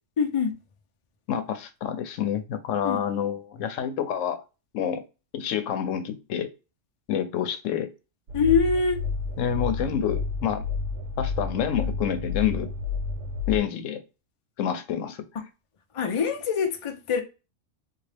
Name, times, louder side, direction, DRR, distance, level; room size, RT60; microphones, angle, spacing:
voice 1, 0.2-0.5 2.8-3.0 8.3-9.0 15.9-17.2, left 5 dB, 40° left, 0.4 m, -24 dB
voice 2, 1.3-4.4 4.7-5.0 5.3-6.5 7.1-7.9 9.4-10.6 11.2-12.7 13.5-14.0 14.6-15.2, left 9 dB, 85° left, 1.0 m, -28 dB
sound 1, 8.3-13.6, left 4 dB, 70° right, 0.9 m, -30 dB
3.8 x 2.4 x 3.3 m
omnidirectional pair, 1.3 m